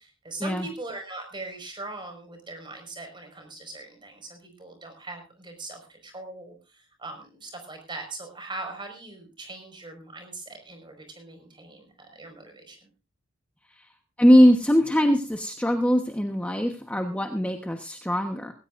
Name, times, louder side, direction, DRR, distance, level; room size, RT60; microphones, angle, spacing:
voice 1, 0.0-12.9, right 2 dB, 25° right, 5 dB, 5.1 m, -41 dB
voice 2, 14.2-18.5, equal, 5° left, 4 dB, 1.1 m, -21 dB
19.0 x 17.0 x 2.6 m, 0.31 s
head